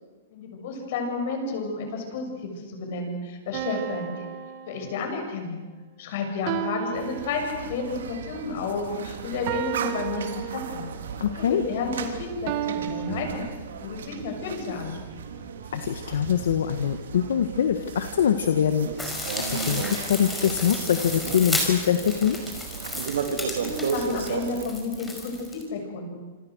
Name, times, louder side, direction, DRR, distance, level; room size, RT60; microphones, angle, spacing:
voice 1, 0.3-4.3 4.7-5.6 6.0-10.9 11.4-13.5 13.8-15.0 23.3-26.2, left 4 dB, 55° left, 3 dB, 7.2 m, -31 dB
sound 1, 3.5-5.3 6.5-7.9 9.5-11.0 12.5-13.5, right 11 dB, 40° right, 1.5 m, -33 dB
sound 2, 7.0-24.7, right 6 dB, 85° right, 3.1 m, -35 dB
voice 2, 11.2-11.6 15.7-19.2 19.5-22.4, left 8 dB, 80° left, 8 dB, 1.7 m, -24 dB
sound 3, 19.0-25.6, left 1 dB, 5° left, 5.3 m, -33 dB
27.5 x 25.5 x 6.5 m, 1.3 s
hypercardioid pair, 150°, 0 cm